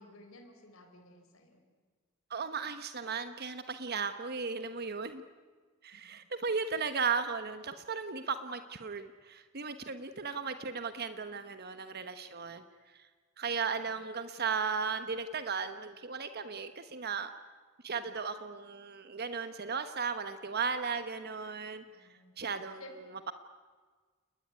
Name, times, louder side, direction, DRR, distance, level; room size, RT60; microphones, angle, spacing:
voice 1, 0.0-1.6 13.8-13.9 21.9-22.3 22.8-22.9, left 2 dB, 85° left, 4 dB, 4.2 m, -54 dB
voice 2, 2.3-5.2 5.8-13.1 13.4-17.3 17.8-21.8 22.4-23.3, right 5 dB, 50° right, 10 dB, 1.2 m, -36 dB
29.5 x 20.5 x 9.7 m, 1.5 s
head